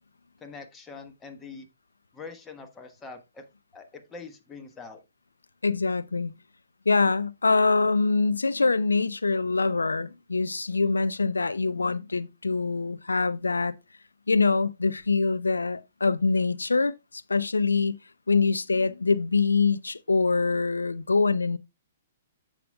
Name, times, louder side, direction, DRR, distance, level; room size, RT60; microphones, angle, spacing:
voice 1, 0.4-1.7 2.1-3.4 3.7-5.0, left 4 dB, 15° left, 1.3 m, -43 dB
voice 2, 5.6-6.3 6.9-13.7 14.3-18.0 18.3-21.6, left 4 dB, 85° left, 0.5 m, -24 dB
14.5 x 5.1 x 2.3 m
hypercardioid pair, 120°, 0 cm